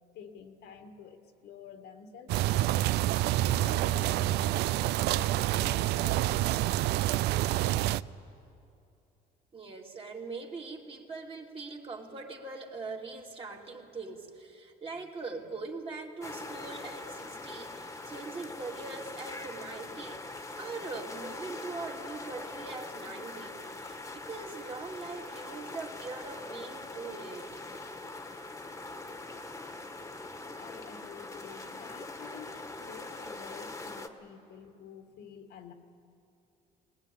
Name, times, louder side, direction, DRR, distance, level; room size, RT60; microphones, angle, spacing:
voice 1, 0.1-3.1 3.3-4.7 5.1-7.0 30.5-35.7, left 7 dB, 80° left, 6 dB, 1.9 m, -49 dB
sound 1, 2.3-8.0, right 15 dB, 80° right, 0.4 m, -27 dB
voice 2, 9.5-27.6, right 3 dB, 35° right, 0 dB, 2.6 m, -42 dB
sound 2, 16.2-34.1, left 2 dB, 15° left, 1.5 m, -42 dB
20.0 x 19.5 x 9.9 m, 2.6 s
cardioid pair, 110°, 17 cm